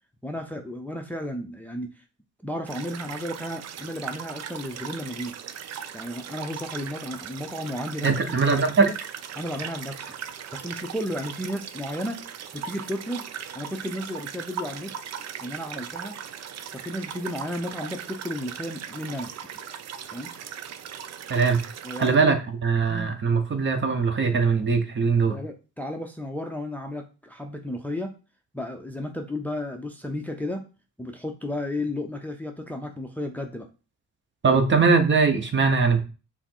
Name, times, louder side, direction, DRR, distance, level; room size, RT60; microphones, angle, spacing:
voice 1, 0.2-2.0 2.4-5.3 5.9-8.4 9.4-10.1 10.5-12.2 12.5-13.2 13.5-15.0 15.4-16.2 16.7-19.3 20.1-20.3 21.8-22.3 22.9-23.2 25.3-28.2 28.5-30.7 31.0-33.7 34.5-34.6, left 1 dB, 5° left, 3 dB, 0.6 m, -33 dB
sound 1, 2.7-22.2, right 8 dB, 60° right, 0.5 m, -38 dB
voice 2, 8.0-8.9 21.3-21.6 22.0-22.4 22.6-25.4 34.4-36.0, right 4 dB, 40° right, 6 dB, 0.9 m, -21 dB
5.7 x 2.0 x 4.4 m, 0.33 s
cardioid pair, 90°, 30 cm